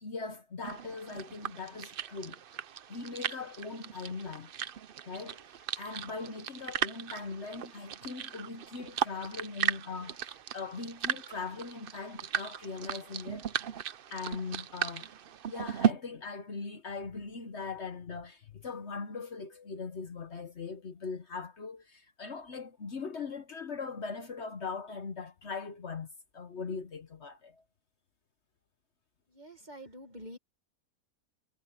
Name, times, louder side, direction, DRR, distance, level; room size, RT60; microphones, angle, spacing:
voice 1, 0.0-2.4 2.9-4.5 5.0-13.5 14.1-15.2 15.5-26.1 26.3-27.6, left 4 dB, 50° left, 1.3 m, -40 dB
sound 1, 0.6-15.9, right 9 dB, 55° right, 0.6 m, -36 dB
voice 2, 29.3-30.4, equal, 30° right, 2.1 m, -47 dB
omnidirectional pair, 1.5 m